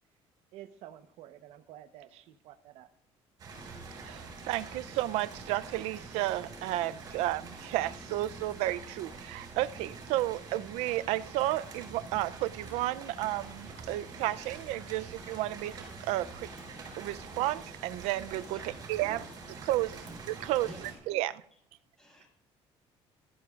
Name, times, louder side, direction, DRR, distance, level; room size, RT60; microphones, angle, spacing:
voice 1, 0.5-2.9, right 12 dB, 70° right, 10 dB, 1.0 m, -50 dB
sound 1, 3.4-20.9, right 4 dB, 35° right, 5.8 m, -46 dB
voice 2, 4.0-16.5 17.0-18.6 18.9-19.2 19.7-20.0 20.3-21.4, right 15 dB, 90° right, 15 dB, 0.5 m, -32 dB
voice 3, 18.5-19.4 20.0-21.0 22.0-22.3, equal, 5° left, -3 dB, 6.3 m, -51 dB
19.5 x 15.0 x 2.5 m, 0.68 s
cardioid pair, 170°, 11 cm